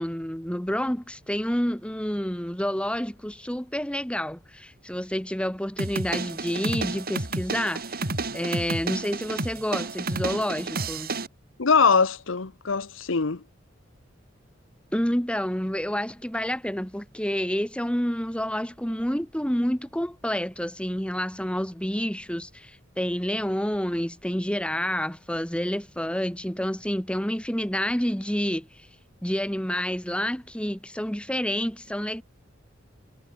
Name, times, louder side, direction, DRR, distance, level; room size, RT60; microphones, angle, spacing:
voice 1, 0.0-8.1 8.3-11.1 14.9-28.7 29.2-32.2, equal, 5° left, 2.2 m, -29 dB
sound 1, 5.8-11.3, right 3 dB, 50° right, 3.3 m, -31 dB
voice 2, 11.6-13.4, left 5 dB, 75° left, 1.0 m, -22 dB
head